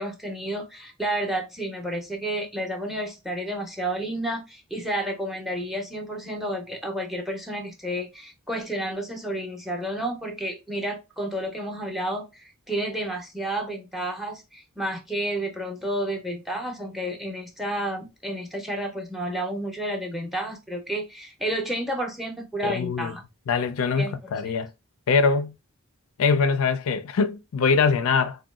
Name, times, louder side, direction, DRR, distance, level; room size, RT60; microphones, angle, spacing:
voice 1, 0.0-23.2 24.0-24.5, right 1 dB, ahead, 0.5 m, -31 dB
voice 2, 22.6-23.1 23.5-24.7 25.1-25.5 26.2-28.4, left 5 dB, 65° left, 0.4 m, -23 dB
3.7 x 2.2 x 2.3 m
head